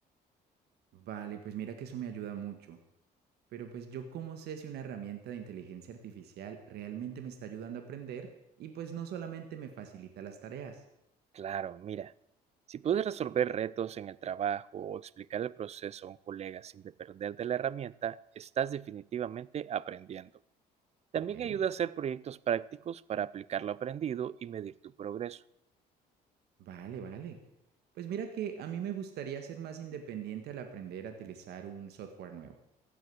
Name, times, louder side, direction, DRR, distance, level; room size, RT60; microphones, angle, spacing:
voice 1, 0.9-2.8 3.5-8.3 8.6-10.8 21.3-21.6 26.6-27.4 28.0-32.5, right 8 dB, 75° right, 1.7 m, -41 dB
voice 2, 11.3-12.1 12.7-20.3 21.1-24.7 25.0-25.4, right 9 dB, 40° right, 0.5 m, -35 dB
15.0 x 9.3 x 7.8 m
cardioid pair, 110°, 17 cm